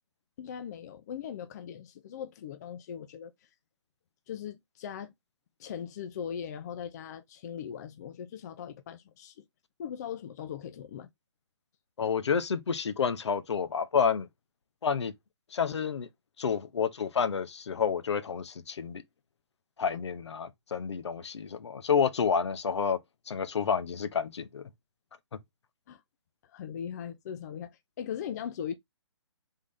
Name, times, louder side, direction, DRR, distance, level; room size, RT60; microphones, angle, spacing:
voice 1, 0.4-3.3 4.3-5.1 5.6-9.4 9.8-11.1 15.6-15.7 25.9-26.0 26.5-28.7, left 8 dB, 35° left, 0.4 m, -39 dB
voice 2, 12.0-14.3 14.8-15.1 15.5-16.1 16.4-19.0 19.8-23.0 23.3-24.6, left 6 dB, 70° left, 0.8 m, -29 dB
3.7 x 3.7 x 3.1 m
hypercardioid pair, 145°, 15 cm